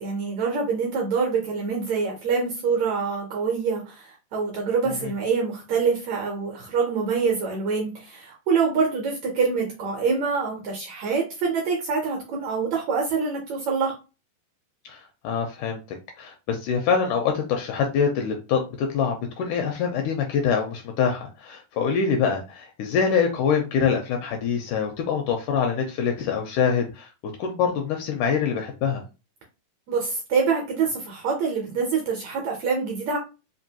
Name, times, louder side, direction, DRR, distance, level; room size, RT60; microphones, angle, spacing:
voice 1, 0.0-14.0 29.9-33.2, right 5 dB, 70° right, 1 dB, 1.7 m, -25 dB
voice 2, 14.9-15.8 16.2-27.1 27.4-29.0, left 6 dB, 80° left, 3 dB, 1.9 m, -25 dB
5.2 x 2.6 x 2.8 m, 0.30 s
omnidirectional pair, 4.1 m